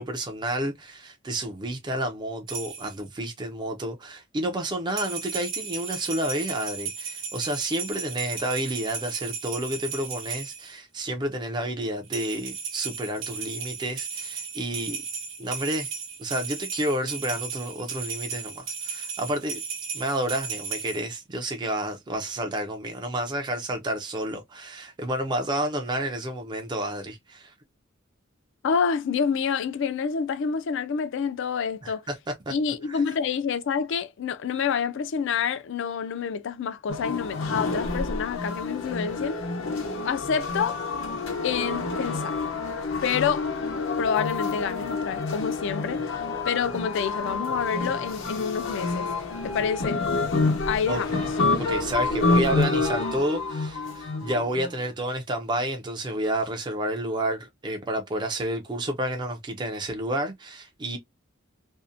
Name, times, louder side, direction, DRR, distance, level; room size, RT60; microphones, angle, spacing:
voice 1, 0.0-15.0 15.4-15.9 16.2-19.6 19.9-27.5 31.8-32.2 32.5-32.6 32.9-33.0 50.9-51.0 51.6-61.0, right 1 dB, 20° right, 0.4 m, -30 dB
sound 1, 2.5-3.0 4.9-10.7 12.1-21.0, right 6 dB, 65° right, 1.0 m, -35 dB
voice 2, 28.6-32.0 32.5-39.4 40.0-40.8 41.4-42.4 43.0-43.5 44.0-49.1 49.4-50.0 50.7-51.2, left 6 dB, 65° left, 0.4 m, -28 dB
sound 2, 36.9-54.7, left 3 dB, 85° left, 0.9 m, -28 dB
2.6 x 2.1 x 2.4 m
head